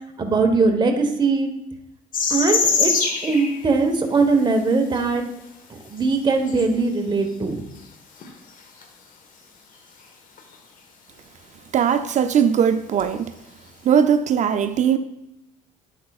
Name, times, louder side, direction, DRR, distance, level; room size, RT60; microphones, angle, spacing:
voice 1, 0.2-1.5 2.3-2.9 3.2-5.2 5.7-7.6, right 4 dB, 25° right, 1.1 m, -20 dB
sound 1, 2.1-3.6 4.9-5.0 6.0-6.1 6.5-6.6 8.2-8.3 8.8-8.9 10.4-10.5 13.0-13.1, left 5 dB, 55° left, 1.3 m, -22 dB
voice 2, 11.7-13.3 13.8-15.0, right 8 dB, 45° right, 0.4 m, -19 dB
9.5 x 8.0 x 2.4 m
cardioid pair, 110°, 17 cm